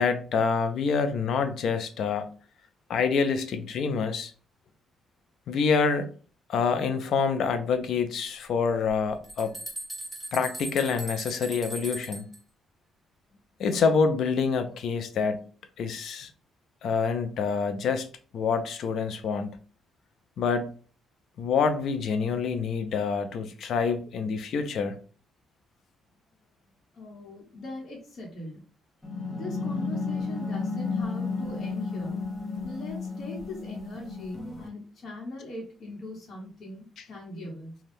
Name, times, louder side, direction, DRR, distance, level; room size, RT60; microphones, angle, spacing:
voice 1, 0.0-2.3 2.9-4.3 5.5-6.1 6.5-9.5 10.3-12.3 13.6-15.5 15.8-16.3 16.8-18.1 18.3-19.6 20.4-20.7 21.4-25.0, left 5 dB, 70° left, 0.5 m, -26 dB
sound 1, 8.9-9.0 9.2-12.4, right 2 dB, 10° right, 1.1 m, -39 dB
voice 2, 26.9-28.6 29.3-32.2 32.6-37.8, left 2 dB, 50° left, 1.0 m, -40 dB
sound 2, 29.0-34.7, left 4 dB, 15° left, 1.0 m, -32 dB
2.6 x 2.3 x 3.4 m
cardioid pair, 90°, 0 cm